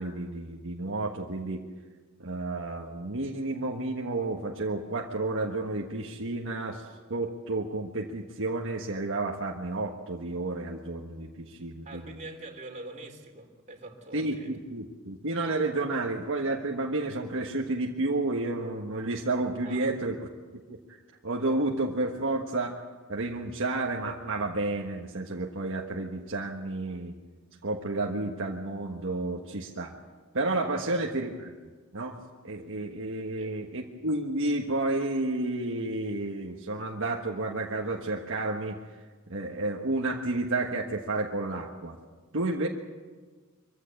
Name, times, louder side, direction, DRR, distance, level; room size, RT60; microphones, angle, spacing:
voice 1, 0.0-1.6 2.2-12.1 14.1-20.2 20.7-20.8 21.2-22.8 23.1-27.1 27.6-29.9 30.3-31.5 31.9-32.2 32.4-38.8 39.3-42.0 42.3-42.7, right 2 dB, 60° right, 1 dB, 1.4 m, -31 dB
voice 2, 11.8-14.5 19.6-20.0 30.5-31.0 33.4-33.5, right 2 dB, 35° right, 2 dB, 3.1 m, -44 dB
24.0 x 15.5 x 8.2 m, 1.4 s
head